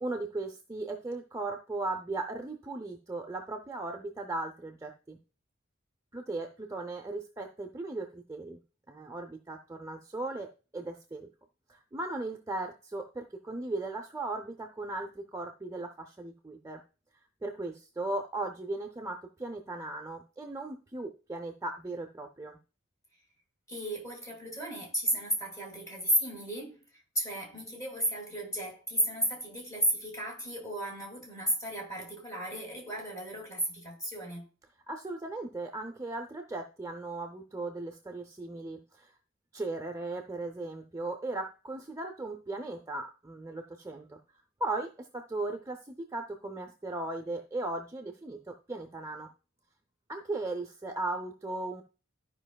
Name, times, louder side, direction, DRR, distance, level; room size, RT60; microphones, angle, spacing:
voice 1, 0.0-5.2 6.1-8.6 8.9-11.3 11.7-16.8 17.4-22.6 34.9-39.1 39.5-44.2 44.6-49.3 50.1-51.8, right 2 dB, 15° right, 0.5 m, -37 dB
voice 2, 23.7-26.8 27.1-34.5, equal, 15° left, 2.3 m, -33 dB
13.5 x 5.1 x 2.3 m
head